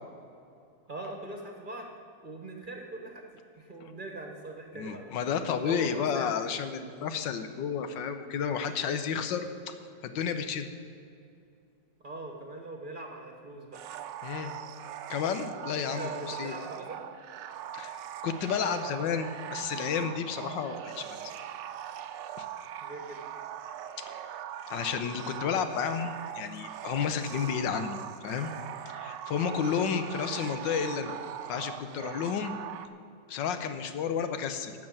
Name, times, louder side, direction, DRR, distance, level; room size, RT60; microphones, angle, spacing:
voice 1, 0.9-1.9 2.2-3.3 3.6-6.3 12.0-13.8 15.8-17.0 22.8-23.2 29.7-29.9, right 2 dB, 30° right, 2 dB, 1.2 m, -41 dB
voice 2, 4.7-9.7 10.0-10.7 14.2-14.5 15.1-16.5 17.7-18.0 18.2-21.2 22.4-22.5 24.0-24.1 24.7-28.5 28.9-31.1 31.5-32.5 33.3-34.7, left 7 dB, 80° left, 9 dB, 1.5 m, -31 dB
sound 1, 13.7-32.9, right 10 dB, 75° right, 1.3 m, -41 dB
12.0 x 6.4 x 8.8 m, 2.5 s
omnidirectional pair, 2.0 m